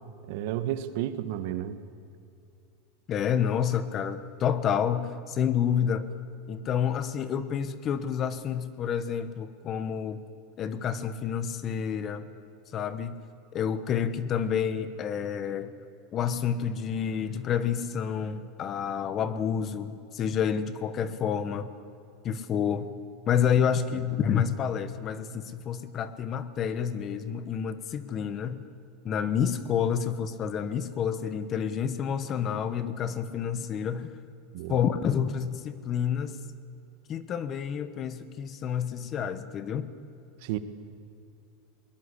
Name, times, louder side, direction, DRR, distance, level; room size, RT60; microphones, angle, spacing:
voice 1, 0.2-1.8 34.5-34.8 40.4-40.6, right 12 dB, 60° right, 11 dB, 1.4 m, -32 dB
voice 2, 3.1-6.1 6.5-10.2 10.6-12.3 12.7-13.2 13.5-15.7 16.1-21.7 22.2-22.9 23.3-28.6 29.0-34.1 34.7-36.4 37.1-39.9, left 8 dB, 30° left, 13 dB, 1.1 m, -29 dB
22.0 x 21.0 x 8.3 m, 2.6 s
supercardioid pair, 160°, 0 cm